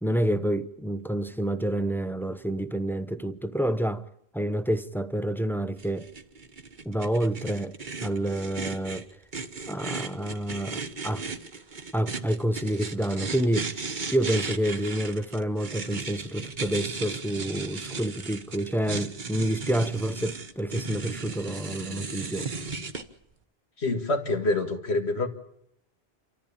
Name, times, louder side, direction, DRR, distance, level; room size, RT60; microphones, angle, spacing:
voice 1, 0.0-4.1 4.3-6.1 6.8-7.8 8.0-9.1 9.7-11.2 11.9-13.7 14.1-22.5, right 1 dB, ahead, 0.7 m, -28 dB
sound 1, 5.8-23.0, right 4 dB, 45° right, 1.4 m, -36 dB
voice 2, 23.8-25.3, left 2 dB, 75° left, 2.4 m, -26 dB
28.5 x 14.0 x 8.6 m
omnidirectional pair, 1.1 m